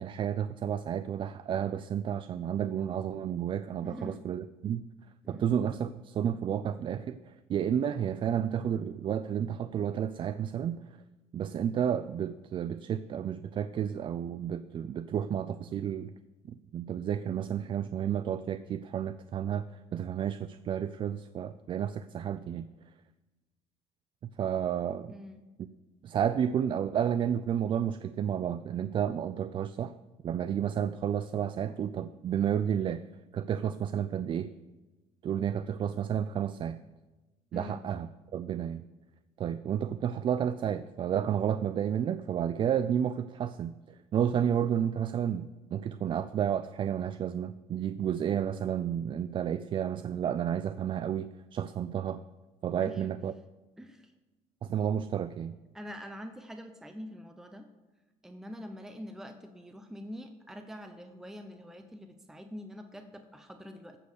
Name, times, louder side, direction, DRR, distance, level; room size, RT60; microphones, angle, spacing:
voice 1, 0.0-4.8 5.3-10.8 11.3-16.1 16.5-19.6 19.9-22.7 24.2-25.1 25.6-25.7 26.0-29.9 30.2-33.0 33.3-34.5 35.2-36.8 37.5-38.8 39.4-52.2 52.6-53.3 54.6-55.5, right 9 dB, 40° right, 12 dB, 0.4 m, -31 dB
voice 2, 3.8-4.2 5.2-5.4 25.1-25.4 37.5-37.8 52.8-53.1 53.8-54.1 55.7-57.7 58.2-64.0, equal, 5° right, 6 dB, 0.8 m, -45 dB
14.5 x 5.3 x 6.5 m, 1.2 s
cardioid pair, 120°, 13 cm